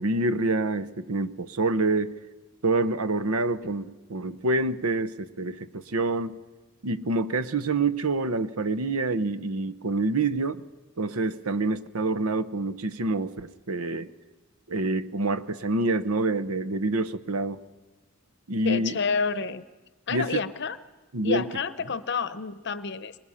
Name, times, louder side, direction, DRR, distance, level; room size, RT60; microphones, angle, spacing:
voice 1, 0.0-2.2 2.6-3.8 4.1-6.4 6.8-10.6 11.0-14.1 14.7-17.6 18.5-19.0 20.1-20.4 21.1-21.5, right 2 dB, 80° right, 13 dB, 0.8 m, -27 dB
voice 2, 18.6-19.6 20.1-20.8 21.2-23.2, left 5 dB, 50° left, 13 dB, 0.8 m, -29 dB
24.5 x 20.5 x 5.7 m, 1.2 s
head